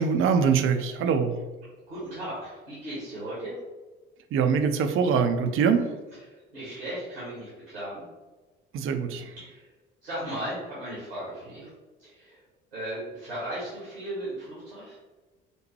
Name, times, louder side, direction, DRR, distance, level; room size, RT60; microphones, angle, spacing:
voice 1, 0.0-1.4 4.3-5.9 8.7-9.3, right 6 dB, 45° right, 8 dB, 0.5 m, -23 dB
voice 2, 1.9-3.6 6.1-8.0 9.5-9.7 10.0-11.7 12.0-12.4 12.7-15.0, right 1 dB, 90° right, -8 dB, 1.3 m, -36 dB
5.1 x 2.1 x 3.2 m, 1.2 s
hypercardioid pair, 55°, 29 cm